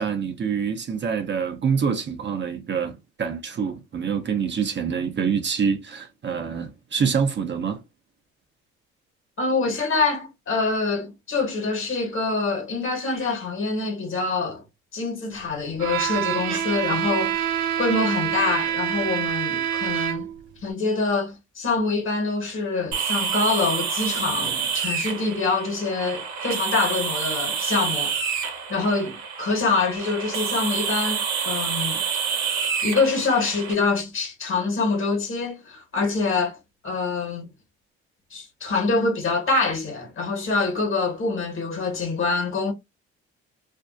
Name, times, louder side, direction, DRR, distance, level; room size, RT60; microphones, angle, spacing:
voice 1, 0.0-7.8, right 6 dB, 40° right, 0.6 m, -26 dB
voice 2, 9.4-14.6 14.9-17.5 17.8-20.3 20.6-32.0 32.8-36.5 36.8-37.5 38.3-42.7, left 3 dB, 45° left, 1.3 m, -25 dB
Bowed string instrument, 15.8-20.5, right 10 dB, 85° right, 0.5 m, -26 dB
sound 1, 22.9-33.7, right 6 dB, 65° right, 0.9 m, -28 dB
2.6 x 2.1 x 2.4 m
supercardioid pair, 65°, 29 cm